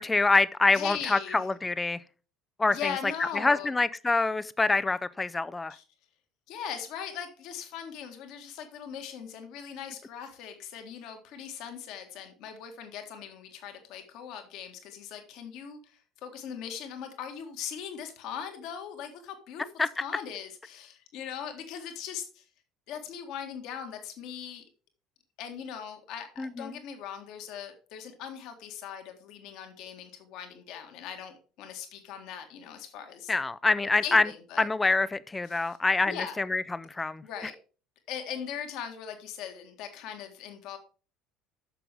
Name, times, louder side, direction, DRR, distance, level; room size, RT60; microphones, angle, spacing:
voice 1, 0.0-2.0 2.6-5.7 19.8-19.9 26.4-26.8 33.3-34.3 34.6-37.2, left 3 dB, 15° left, 0.5 m, -26 dB
voice 2, 0.7-1.5 2.7-3.7 5.7-5.8 6.5-22.5 22.9-24.6 25.4-33.3 34.0-34.7 35.5-35.8 36.1-36.4 37.2-37.5 38.1-40.8, left 8 dB, 55° left, 1.8 m, -40 dB
10.0 x 6.9 x 3.6 m
figure-of-eight pair, 65°, 0 cm